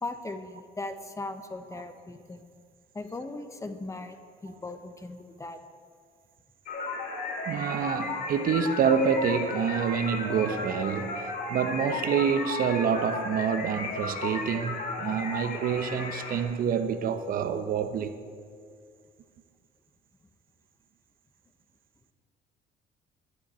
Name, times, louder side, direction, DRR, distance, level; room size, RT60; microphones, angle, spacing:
voice 1, 0.0-2.4 2.9-4.2 4.4-5.6, left 2 dB, 20° left, 0.9 m, -38 dB
sound 1, 6.7-16.4, left 3 dB, 60° left, 2.3 m, -34 dB
voice 2, 7.5-18.1, right 7 dB, 60° right, 0.8 m, -27 dB
12.5 x 11.5 x 4.3 m
cardioid pair, 110°, 17 cm